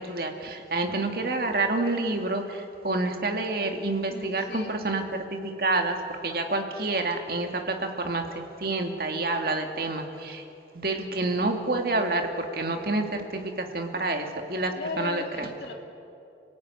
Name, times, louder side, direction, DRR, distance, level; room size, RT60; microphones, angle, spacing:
voice 1, 0.0-6.0 6.2-10.4 10.7-15.5, right 2 dB, 55° right, 4 dB, 2.4 m, -28 dB
voice 2, 4.1-4.7 14.7-15.7, left 2 dB, 70° left, 1 dB, 2.0 m, -36 dB
26.0 x 16.5 x 9.5 m, 2.7 s
head